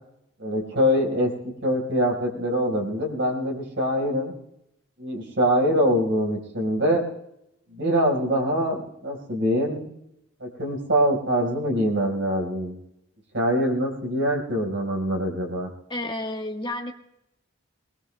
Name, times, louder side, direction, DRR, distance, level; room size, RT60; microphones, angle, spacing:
voice 1, 0.4-1.3 1.6-4.3 5.0-7.0 7.7-9.9 10.4-12.8 13.3-15.7, equal, 70° right, -1 dB, 4.5 m, -24 dB
voice 2, 15.9-16.9, left 1 dB, 25° left, 3 dB, 1.2 m, -30 dB
23.0 x 22.0 x 2.2 m, 0.81 s
head